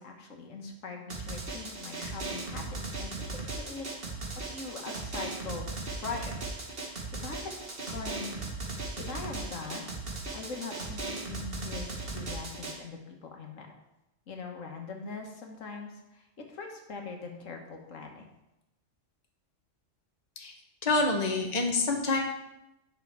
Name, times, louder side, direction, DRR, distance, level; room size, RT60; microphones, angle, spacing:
voice 1, 0.0-3.9 4.5-5.7 6.0-6.4 6.7-6.9 7.2-7.6 7.9-8.3 9.0-9.9 10.3-13.7 14.3-16.2 16.5-18.2, left 4 dB, 80° left, 2 dB, 1.6 m, -41 dB
Drum, 1.1-12.7, right 3 dB, 50° right, 1.6 m, -37 dB
voice 2, 20.8-22.2, left 3 dB, 35° left, 2 dB, 1.1 m, -27 dB
9.5 x 5.8 x 4.7 m, 0.91 s
omnidirectional pair, 1.3 m